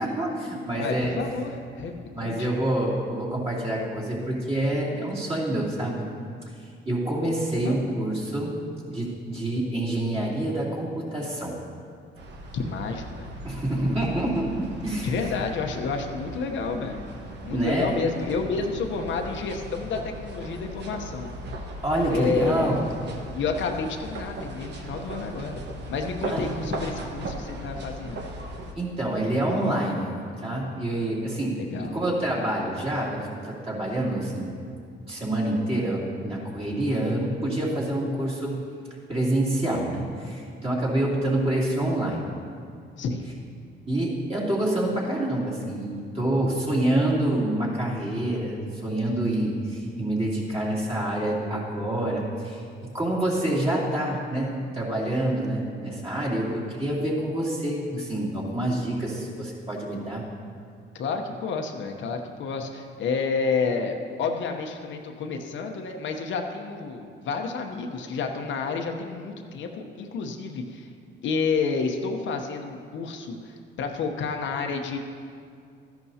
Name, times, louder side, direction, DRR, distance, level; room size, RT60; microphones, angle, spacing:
voice 1, 0.0-1.1 2.1-6.0 6.9-8.5 8.8-11.5 13.4-15.1 17.5-17.9 21.8-22.8 26.3-26.5 28.7-30.1 30.4-34.6 35.1-38.6 39.1-42.3 43.9-52.6 52.9-60.2, right 1 dB, 30° right, -5 dB, 2.9 m, -27 dB
voice 2, 0.8-1.9 2.2-2.5 7.6-7.9 12.5-13.3 15.0-17.1 17.4-21.3 22.1-22.8 23.3-25.6 25.9-28.3 31.5-32.1 43.0-43.3 60.9-70.9 71.2-75.0, left 4 dB, 70° left, 3 dB, 0.9 m, -30 dB
sound 1, 12.2-28.7, right 1 dB, 60° right, 1.3 m, -38 dB
13.5 x 10.5 x 2.8 m, 2.2 s
cardioid pair, 90°, 20 cm